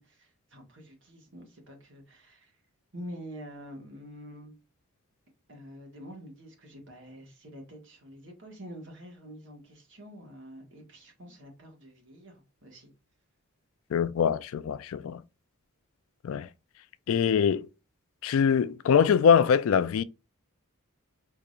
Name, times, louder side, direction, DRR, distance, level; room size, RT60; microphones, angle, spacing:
voice 1, 0.0-2.6 2.9-4.5 5.5-12.9, equal, 55° right, 1.5 m, -47 dB
voice 2, 13.9-15.2 16.2-16.5 17.1-17.7 18.2-20.0, left 7 dB, 65° left, 0.3 m, -23 dB
4.7 x 2.9 x 2.4 m
head